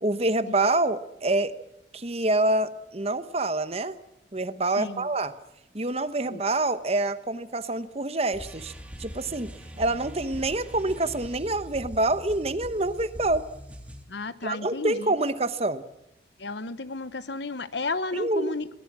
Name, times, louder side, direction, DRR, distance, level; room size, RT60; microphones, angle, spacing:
voice 1, 0.0-1.5 1.9-4.0 4.3-5.3 5.7-8.7 9.0-9.5 9.8-13.4 14.4-15.8 18.1-18.6, right 2 dB, 35° right, 12 dB, 1.0 m, -26 dB
voice 2, 4.8-5.1 6.3-6.4 14.1-15.1 16.4-18.7, left 3 dB, 70° left, 15 dB, 1.0 m, -33 dB
sound 1, 8.3-14.0, equal, 5° right, 2.3 m, -42 dB
23.0 x 18.5 x 7.5 m, 0.84 s
head